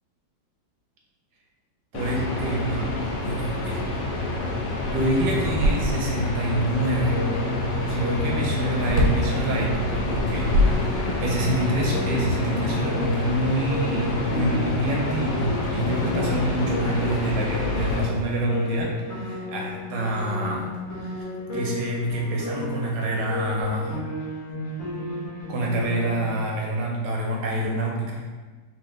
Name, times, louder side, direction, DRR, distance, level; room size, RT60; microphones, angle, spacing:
sound 1, 1.9-18.1, left 2 dB, 80° left, 0.8 m, -27 dB
voice 1, 1.9-3.8 4.9-7.2 7.9-10.9 11.2-20.7 21.0-21.2 21.5-24.0 25.5-28.2, right 1 dB, 70° right, -1 dB, 1.2 m, -27 dB
sound 2, 4.4-4.5 4.8-6.3 8.9-9.3 10.2-11.4, equal, 85° right, 1.4 m, -23 dB
Piano, 7.1-26.3, left 1 dB, 50° left, 1.2 m, -34 dB
4.4 x 2.5 x 3.1 m, 1.4 s
omnidirectional pair, 2.2 m